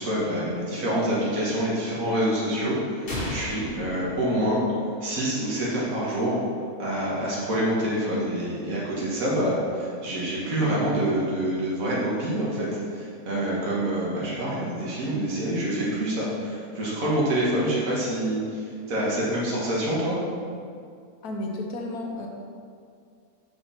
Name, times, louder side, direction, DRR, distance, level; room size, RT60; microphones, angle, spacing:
voice 1, 0.0-4.6 5.0-6.4 6.8-18.6 18.9-20.2, right 1 dB, 65° right, -6 dB, 2.0 m, -26 dB
sound 1, 3.1-5.0, left 1 dB, 40° left, 1.6 m, -34 dB
voice 2, 21.2-22.3, left 2 dB, 80° left, 0 dB, 1.5 m, -32 dB
6.1 x 4.9 x 5.7 m, 2.3 s
omnidirectional pair, 1.6 m